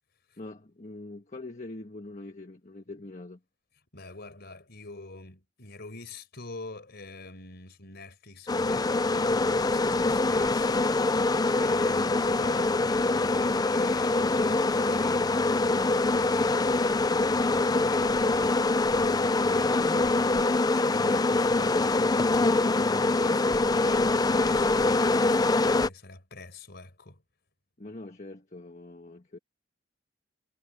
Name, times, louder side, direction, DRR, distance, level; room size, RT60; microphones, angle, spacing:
voice 1, 0.4-3.4 27.8-29.4, left 2 dB, 35° left, 1.5 m, -43 dB
voice 2, 3.9-27.2, left 2 dB, 55° left, 4.9 m, -45 dB
sound 1, 8.5-25.9, left 2 dB, 20° left, 0.5 m, -24 dB
head